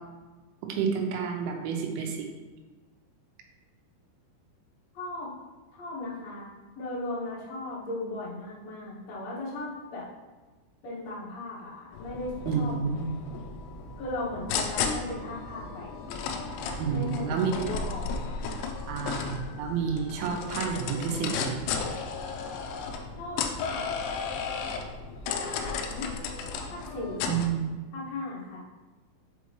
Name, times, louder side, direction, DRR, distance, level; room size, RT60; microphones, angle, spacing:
voice 1, 0.6-2.3 12.5-13.1 16.8-17.5 18.9-21.6 27.3-27.7, right 6 dB, 80° right, 2 dB, 3.1 m, -29 dB
voice 2, 4.9-5.3 5.7-6.5 6.7-10.1 10.8-12.7 14.0-15.9 16.9-18.2 23.2-23.8 25.4-26.1 26.7-27.3 27.9-28.7, left 2 dB, 70° left, -8 dB, 1.6 m, -37 dB
sound 1, 11.9-27.5, left 5 dB, 90° left, 2.6 m, -34 dB
7.1 x 4.9 x 3.0 m, 1.3 s
omnidirectional pair, 5.9 m